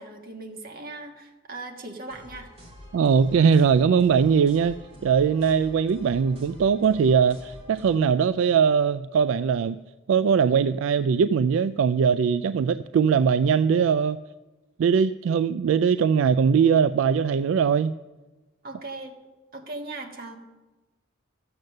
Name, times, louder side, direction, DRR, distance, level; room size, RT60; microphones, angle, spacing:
voice 1, 0.0-2.5 18.6-19.1 19.5-20.4, right 2 dB, 45° right, 2 dB, 1.6 m, -38 dB
sound 1, 2.0-8.0, left 1 dB, 30° right, 2.5 m, -47 dB
voice 2, 2.9-4.8 5.0-9.8 10.1-14.2 14.8-17.9, right 6 dB, 75° right, 14 dB, 0.3 m, -21 dB
13.0 x 8.0 x 6.5 m, 1.2 s
head